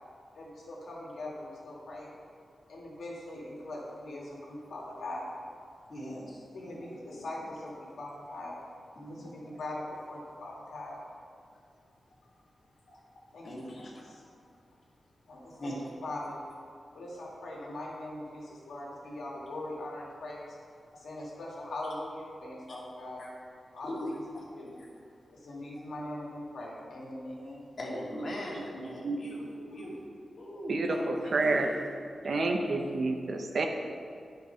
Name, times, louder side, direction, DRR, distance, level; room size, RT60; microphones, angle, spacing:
voice 1, 0.3-2.1 2.7-5.3 6.5-8.6 9.1-11.0 12.9-13.0 13.3-13.5 13.7-14.2 15.3-15.7 16.0-16.4 16.9-20.6 20.9-23.2 23.7-24.2 24.5-24.8 25.3-27.6 29.8-29.9 31.2-31.7, left 1 dB, 85° left, -4 dB, 1.9 m, -41 dB
voice 2, 5.9-6.8 9.0-9.3 13.4-14.0 15.6-15.9 23.2-23.3 23.8-24.4 24.8-24.9 27.8-30.0 30.4-31.1 31.4-31.6 32.2-32.5, equal, 60° left, -4 dB, 2.1 m, -39 dB
voice 3, 30.7-31.7 32.2-33.7, right 3 dB, 65° right, 4 dB, 0.8 m, -29 dB
9.4 x 4.6 x 5.6 m, 2.3 s
cardioid pair, 75°, 0 cm